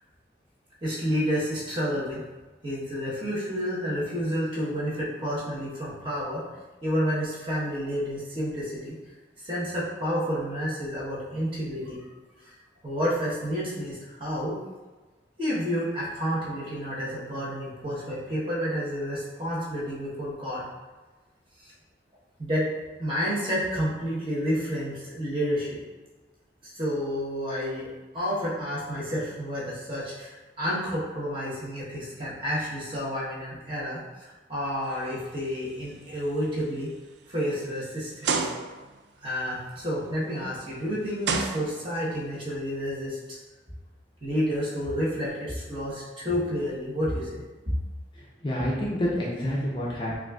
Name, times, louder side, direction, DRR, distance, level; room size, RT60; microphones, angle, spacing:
voice 1, 0.8-2.2 2.6-6.4 6.8-8.9 9.4-12.0 12.4-12.6 12.8-14.5 15.4-20.6 21.6-21.7 22.4-22.6 23.0-25.8 26.6-30.3 30.6-36.9 37.3-38.5 39.2-43.4 44.2-47.3, equal, 30° right, -7 dB, 1.1 m, -30 dB
sound 1, 35.1-35.4 35.9-36.1 36.7-36.8 38.2-39.0 40.4-40.5 41.2-42.1, right 5 dB, 75° right, 0.3 m, -29 dB
voice 2, 48.2-50.1, equal, 25° left, -4 dB, 0.5 m, -28 dB
6.0 x 2.5 x 2.3 m, 1.2 s
head